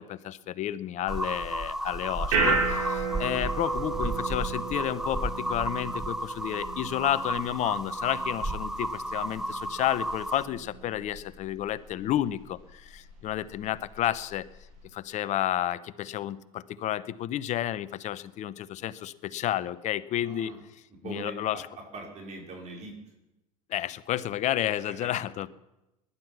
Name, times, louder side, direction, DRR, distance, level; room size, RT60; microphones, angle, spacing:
voice 1, 0.0-14.5 14.9-20.5 21.0-21.7 23.7-25.5, left 12 dB, 40° left, 16 dB, 0.8 m, -31 dB
sound 1, 1.1-10.4, right 1 dB, 5° right, 0.8 m, -33 dB
sound 2, 1.3-14.8, right 4 dB, 60° right, 6.8 m, -35 dB
voice 2, 20.2-20.6 21.0-21.6 21.9-22.9 25.0-25.1, right 3 dB, 40° right, -1 dB, 5.1 m, -41 dB
19.5 x 11.5 x 5.9 m, 0.96 s
hypercardioid pair, 80°, 19 cm